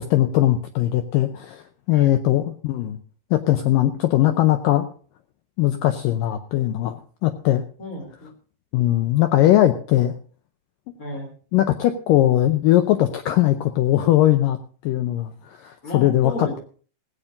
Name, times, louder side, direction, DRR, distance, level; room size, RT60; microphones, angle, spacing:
voice 1, 0.0-3.0 3.3-4.9 5.6-7.6 8.7-10.1 11.5-14.6 14.8-16.5, left 13 dB, 85° left, 8 dB, 2.0 m, -20 dB
voice 2, 7.8-8.3 11.0-11.3 15.8-16.6, left 1 dB, 25° left, -2 dB, 2.7 m, -32 dB
17.5 x 15.5 x 2.6 m, 0.41 s
omnidirectional pair, 4.8 m